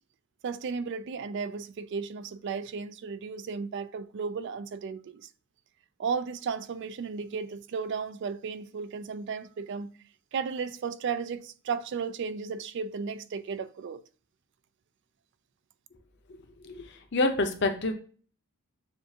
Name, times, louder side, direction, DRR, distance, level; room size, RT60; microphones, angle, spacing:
voice 1, 0.4-5.3 6.0-9.9 10.3-14.0, right 5 dB, 55° right, 0.3 m, -34 dB
voice 2, 16.6-17.9, left 2 dB, 55° left, 0.7 m, -27 dB
6.9 x 2.5 x 2.8 m
head